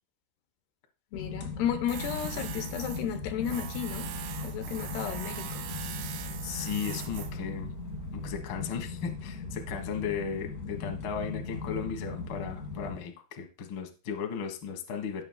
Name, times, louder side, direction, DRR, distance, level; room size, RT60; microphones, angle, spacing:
voice 1, 1.1-4.1 4.4-5.7, left 9 dB, 80° left, 3.0 m, -33 dB
sound 1, 1.1-13.0, left 4 dB, 40° left, 1.2 m, -39 dB
Tools, 1.9-8.4, right 10 dB, 80° right, 3.1 m, -41 dB
voice 2, 6.4-7.7 8.1-15.2, left 7 dB, 60° left, 1.3 m, -36 dB
17.0 x 6.8 x 2.3 m
omnidirectional pair, 4.7 m